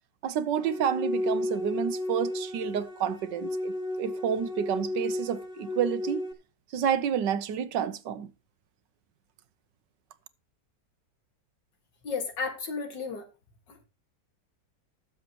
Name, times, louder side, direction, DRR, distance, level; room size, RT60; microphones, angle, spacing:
voice 1, 0.2-6.3 6.7-8.3, right 8 dB, 75° right, 1.5 m, -29 dB
sound 1, 0.6-6.3, left 1 dB, 30° left, 1.6 m, -33 dB
voice 2, 12.0-13.3 13.7-13.8, left 4 dB, 75° left, 2.6 m, -33 dB
20.0 x 7.2 x 3.0 m
omnidirectional pair, 1.9 m